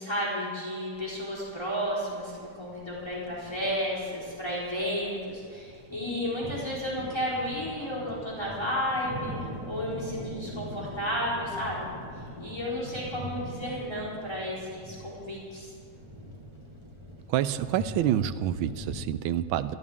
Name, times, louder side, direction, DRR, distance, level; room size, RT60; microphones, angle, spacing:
voice 1, 0.0-15.7, equal, 10° left, -8 dB, 4.1 m, -33 dB
sound 1, 0.9-19.0, equal, 15° right, 1.3 m, -42 dB
voice 2, 17.3-19.8, right 11 dB, 75° right, 12 dB, 1.4 m, -27 dB
27.0 x 12.5 x 3.7 m, 2.2 s
omnidirectional pair, 2.3 m